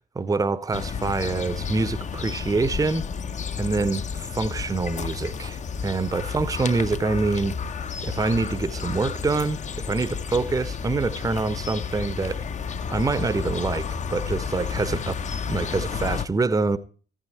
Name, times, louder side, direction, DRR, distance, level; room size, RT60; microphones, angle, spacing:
voice 1, 0.1-3.0 3.6-7.5 8.0-12.4 12.9-15.2 15.5-16.8, right 3 dB, 10° right, 0.9 m, -26 dB
sound 1, 0.7-16.3, left 6 dB, 20° left, 0.8 m, -31 dB
14.5 x 13.0 x 4.5 m
figure-of-eight pair, 60°, 32 cm